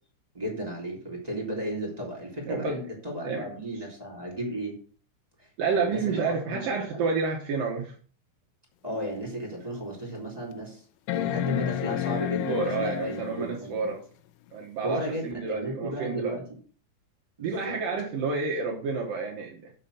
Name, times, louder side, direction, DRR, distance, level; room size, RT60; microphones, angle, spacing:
voice 1, 0.3-4.7 5.4-7.1 8.8-10.8 11.1-13.9 14.8-16.4 17.4-17.8, right 1 dB, 10° right, -1 dB, 2.2 m, -34 dB
voice 2, 2.5-2.8 3.2-3.5 5.6-7.9 12.4-14.0 14.5-16.4 17.4-19.6, right 4 dB, 75° right, 0 dB, 2.0 m, -29 dB
sound 1, 8.9-9.0 9.6-9.7 11.1-13.6 15.3-15.4, left 14 dB, 85° left, 3.1 m, -30 dB
7.2 x 7.1 x 6.7 m, 0.42 s
omnidirectional pair, 5.9 m